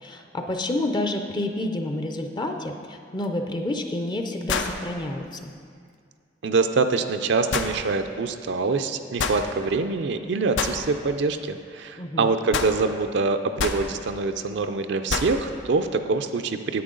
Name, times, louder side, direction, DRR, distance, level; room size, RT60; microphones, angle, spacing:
voice 1, 0.0-5.5 12.0-12.3, left 1 dB, 25° left, 4 dB, 0.5 m, -29 dB
sound 1, 3.2-3.3 4.5-4.8 7.5-7.7 9.2-9.4 10.6-10.8 12.5-12.8 13.6-13.8 15.1-15.4, left 5 dB, 85° left, 0.6 m, -26 dB
voice 2, 6.4-16.8, right 4 dB, 65° right, 7 dB, 0.4 m, -25 dB
10.0 x 8.3 x 3.8 m, 2.1 s
head